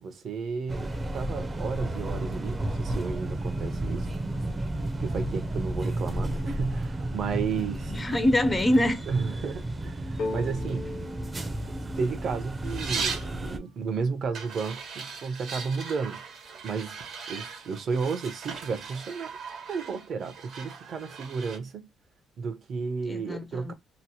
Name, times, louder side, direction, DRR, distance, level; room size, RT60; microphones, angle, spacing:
voice 1, 0.0-4.1 5.0-7.9 9.1-10.9 12.0-16.2 16.6-17.0 17.3-19.4 19.7-21.9 22.4-23.7, right 5 dB, 60° right, 0.7 m, -33 dB
sound 1, 0.7-13.6, right 1 dB, 25° right, 0.5 m, -32 dB
voice 2, 7.9-9.0 23.1-23.7, left 1 dB, 20° left, 0.5 m, -24 dB
sound 2, 10.2-13.9, left 3 dB, 75° left, 0.9 m, -39 dB
sound 3, 12.6-13.3 14.3-21.6, right 5 dB, 75° right, 1.2 m, -38 dB
2.9 x 2.1 x 2.8 m
cardioid pair, 90°, 0 cm